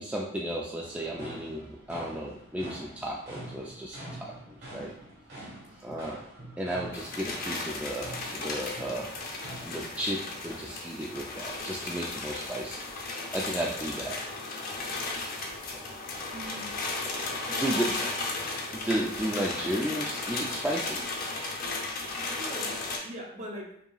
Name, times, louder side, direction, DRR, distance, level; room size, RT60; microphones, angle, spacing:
voice 1, 0.0-4.3 4.7-4.9 5.8-6.2 6.6-9.1 9.6-12.8 13.3-14.2 15.7-15.8 17.1-17.2 17.6-18.0 18.7-21.1, right 1 dB, 5° right, -3 dB, 0.3 m, -33 dB
sound 1, 0.8-9.8, right 1 dB, 55° right, 1.5 m, -46 dB
sound 2, 6.9-23.0, left 3 dB, 50° left, 0.7 m, -35 dB
voice 2, 16.3-16.9 17.2-18.0 21.9-23.8, equal, 40° right, -1 dB, 0.8 m, -44 dB
5.2 x 2.8 x 2.3 m, 0.70 s
head